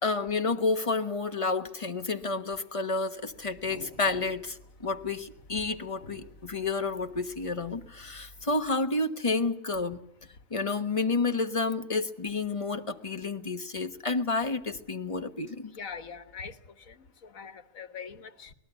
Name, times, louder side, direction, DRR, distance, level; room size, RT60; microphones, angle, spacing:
voice 1, 0.0-10.0 10.5-15.7, left 3 dB, 25° left, 8 dB, 1.2 m, -30 dB
sound 1, 3.3-8.7, equal, 50° left, 8.3 m, -52 dB
voice 2, 15.7-18.5, left 6 dB, 80° left, 11 dB, 1.8 m, -43 dB
25.0 x 19.0 x 8.2 m, 0.76 s
omnidirectional pair, 1.4 m